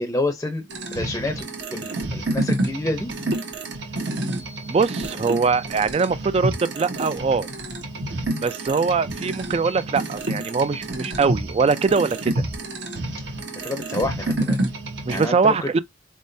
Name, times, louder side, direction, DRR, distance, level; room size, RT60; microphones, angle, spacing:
voice 1, 0.0-1.5 1.7-3.1 13.6-14.6 15.1-15.7, left 2 dB, 15° left, 0.6 m, -28 dB
sound 1, 0.7-15.2, right 1 dB, 70° right, 1.2 m, -29 dB
voice 2, 4.7-7.5 8.4-12.3 15.1-15.8, right 4 dB, 35° right, 0.3 m, -22 dB
4.1 x 3.6 x 2.6 m
head